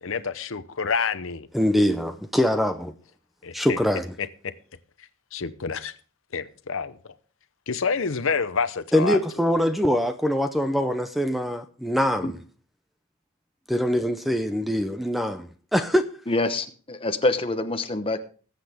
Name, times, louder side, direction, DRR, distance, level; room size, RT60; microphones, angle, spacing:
voice 1, 0.0-1.5 3.4-3.8 5.3-5.9 6.3-7.0 7.7-9.2, left 5 dB, 65° left, 0.7 m, -28 dB
voice 2, 1.5-2.9 3.5-4.1 8.9-12.4 13.7-16.1, equal, ahead, 0.5 m, -23 dB
voice 3, 16.3-18.2, left 2 dB, 25° left, 0.9 m, -26 dB
20.5 x 7.9 x 3.5 m
head